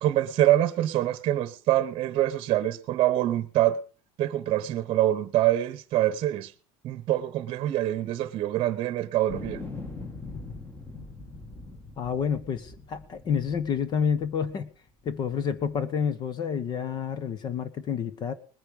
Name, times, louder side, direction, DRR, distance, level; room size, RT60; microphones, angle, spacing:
voice 1, 0.0-3.8 4.2-6.5 6.8-9.6, right 13 dB, 45° right, 1.0 m, -25 dB
sound 1, 9.3-14.5 15.1-15.8, left 3 dB, 15° left, 2.1 m, -42 dB
voice 2, 12.0-14.7 15.0-18.3, left 7 dB, 35° left, 1.1 m, -29 dB
20.0 x 9.8 x 5.3 m
cardioid pair, 150°, 12 cm